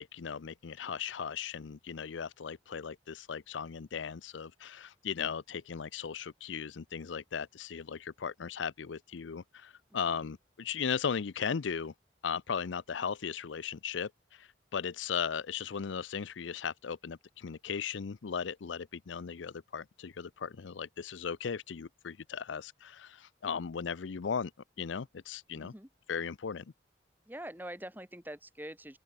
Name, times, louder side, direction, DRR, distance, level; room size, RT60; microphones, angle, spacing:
voice 1, 0.0-11.9 12.2-24.5 24.8-25.7 26.1-26.6, left 6 dB, 90° left, 0.5 m, -37 dB
voice 2, 9.9-10.2 25.5-25.9 27.2-29.0, right 1 dB, 10° right, 5.1 m, -45 dB
open air
head